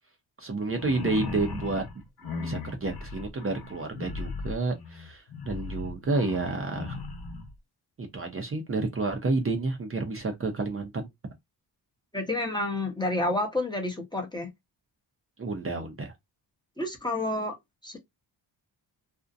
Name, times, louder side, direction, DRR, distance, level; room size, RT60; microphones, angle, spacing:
voice 1, 0.4-1.8 2.4-7.0 8.1-11.1 15.4-16.1, right 3 dB, 30° right, 0.6 m, -30 dB
sound 1, 0.7-7.5, left 4 dB, 55° left, 0.9 m, -37 dB
voice 2, 12.1-14.5 16.8-17.5 17.8-18.0, left 2 dB, 10° left, 0.8 m, -29 dB
2.6 x 2.1 x 2.5 m
cardioid pair, 85°, 44 cm